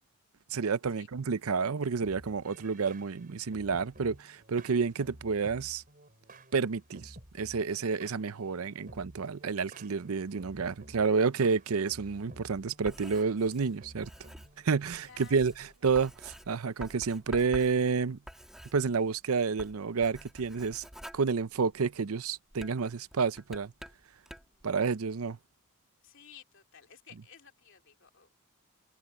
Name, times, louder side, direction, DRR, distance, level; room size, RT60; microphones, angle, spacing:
voice 1, 0.5-5.8 6.5-14.1 14.6-18.2 18.7-20.8 21.1-23.7 24.6-25.4, right 5 dB, 80° right, 0.6 m, -30 dB
sound 1, 2.0-15.7, right 1 dB, 40° right, 5.4 m, -53 dB
Writing, 12.6-19.2 19.5-22.0 22.5-24.6, equal, ahead, 1.9 m, -48 dB
voice 2, 15.0-15.4 26.0-28.4, left 7 dB, 60° left, 2.9 m, -55 dB
head